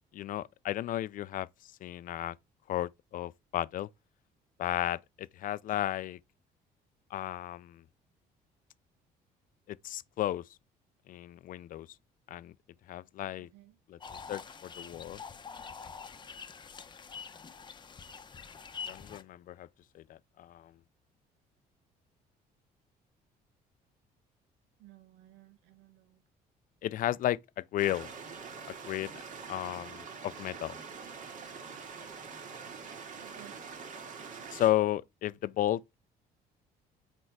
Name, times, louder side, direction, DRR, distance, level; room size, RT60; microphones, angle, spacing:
voice 1, 0.0-2.4 2.7-3.9 4.6-6.2 7.1-7.8 9.7-10.4 11.1-11.9 12.3-12.5 12.9-13.5 13.9-14.0 14.3-15.2 18.9-19.7 19.9-20.7 26.8-28.1 28.7-30.8 34.5-35.9, left 13 dB, 55° left, 0.4 m, -34 dB
voice 2, 13.4-13.8 24.8-26.2 33.2-33.6, right 13 dB, 90° right, 0.9 m, -56 dB
sound 1, 14.0-19.2, left 6 dB, 25° left, 0.8 m, -45 dB
sound 2, 27.8-34.7, right 5 dB, 50° right, 2.0 m, -45 dB
6.4 x 4.5 x 4.6 m
cardioid pair, 110°, 17 cm